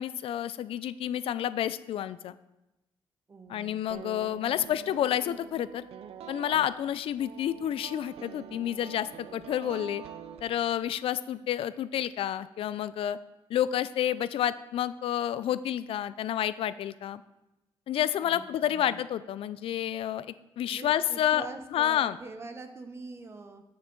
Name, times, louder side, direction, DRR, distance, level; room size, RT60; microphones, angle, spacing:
voice 1, 0.0-2.3 3.5-5.9 6.3-10.0 10.4-13.2 13.5-17.2 17.9-21.5 21.7-22.2, left 11 dB, 70° left, 15 dB, 0.4 m, -29 dB
voice 2, 3.3-3.8 18.2-19.0 20.7-23.6, right 3 dB, 25° right, 7 dB, 0.8 m, -44 dB
sound 1, 3.9-11.0, right 9 dB, 80° right, 0.5 m, -46 dB
13.5 x 5.9 x 3.9 m, 0.96 s
wide cardioid pair, 170°, 10 cm